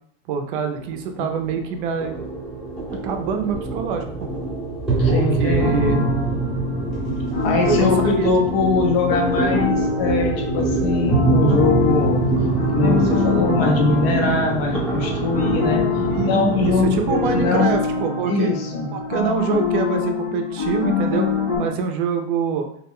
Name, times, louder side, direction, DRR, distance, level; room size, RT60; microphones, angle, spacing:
voice 1, 0.3-2.1 3.0-4.3 5.1-6.0 7.6-8.3 16.0-18.5 18.9-21.3 21.6-22.7, right 6 dB, 55° right, 5 dB, 0.4 m, -25 dB
sound 1, 0.7-17.5, right 3 dB, ahead, 0.7 m, -24 dB
voice 2, 5.0-6.1 7.4-12.2 12.7-15.8 16.2-17.0 17.3-17.8 18.3-18.9, left 4 dB, 70° left, 1 dB, 0.8 m, -22 dB
sound 2, 5.6-21.6, left 5 dB, 90° left, 1.0 m, -25 dB
2.3 x 2.1 x 3.5 m, 0.69 s
supercardioid pair, 160°, 31 cm